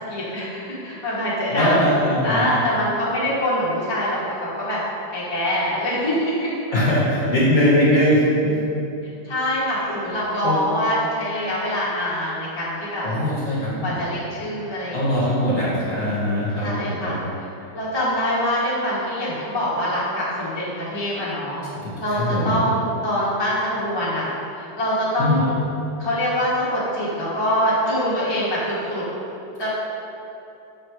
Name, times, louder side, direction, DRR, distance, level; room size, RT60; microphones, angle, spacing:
voice 1, 0.1-1.9 2.2-4.8 5.1-6.5 9.2-13.1 13.8-15.6 16.6-17.2 17.7-21.6 22.0-24.3 24.5-25.5 26.0-29.0 29.6-29.7, equal, 20° left, -9 dB, 0.8 m, -24 dB
voice 2, 1.5-2.4 6.7-8.6 10.4-10.6 13.0-14.0 14.9-17.1 21.7-22.6 25.2-25.4, equal, 40° left, -8 dB, 1.4 m, -21 dB
6.4 x 3.2 x 4.6 m, 2.8 s
omnidirectional pair, 2.1 m